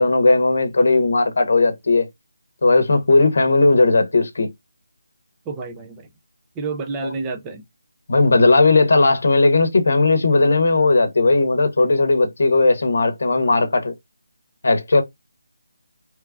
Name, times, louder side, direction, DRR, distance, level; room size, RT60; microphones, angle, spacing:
voice 1, 0.0-2.1 2.6-4.5 7.0-7.1 8.1-13.9 14.6-15.0, left 3 dB, 45° left, 0.9 m, -16 dB
voice 2, 5.5-6.1 6.6-7.6, right 4 dB, 10° right, 0.3 m, -29 dB
3.1 x 2.4 x 3.4 m
figure-of-eight pair, 180°, 0 cm